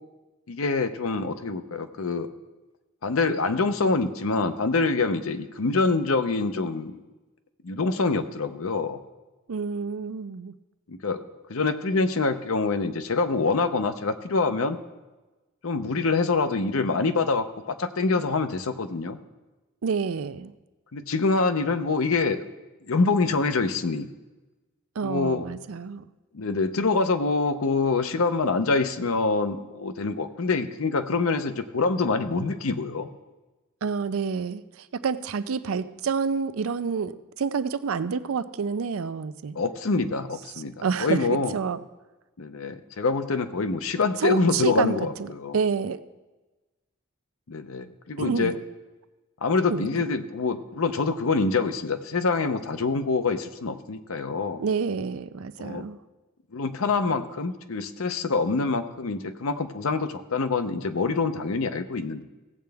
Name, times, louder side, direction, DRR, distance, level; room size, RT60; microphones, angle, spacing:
voice 1, 0.5-2.3 3.0-7.0 7.6-9.0 10.9-11.2 11.5-14.8 15.6-19.2 20.9-22.5 22.9-24.1 25.0-25.5 26.3-33.1 39.6-40.7 41.0-41.6 42.4-45.6 47.5-48.5 49.4-54.6 55.6-55.8 56.5-62.2, left 3 dB, 70° left, 10 dB, 0.7 m, -25 dB
voice 2, 9.5-10.5 19.8-20.5 25.0-26.0 33.8-39.6 40.8-41.8 44.2-46.0 48.2-48.6 49.7-49.9 54.6-56.0, right 5 dB, 75° right, 13 dB, 0.5 m, -28 dB
16.5 x 7.7 x 3.5 m, 1.1 s
head